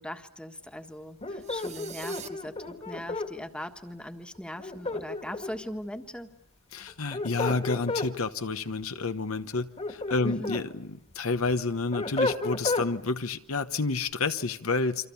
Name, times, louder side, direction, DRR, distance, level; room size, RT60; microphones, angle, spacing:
voice 1, 0.0-6.3 10.2-10.6, equal, 5° left, 6 dB, 1.5 m, -40 dB
sound 1, 1.2-3.3 4.6-5.7 6.9-8.1 9.5-10.7 11.1-12.9, left 2 dB, 30° left, 1.9 m, -32 dB
sound 2, 1.4-2.3, right 9 dB, 30° right, 1.3 m, -43 dB
voice 2, 6.7-15.1, left 3 dB, 75° left, 9 dB, 1.1 m, -29 dB
29.0 x 25.5 x 7.1 m, 0.71 s
head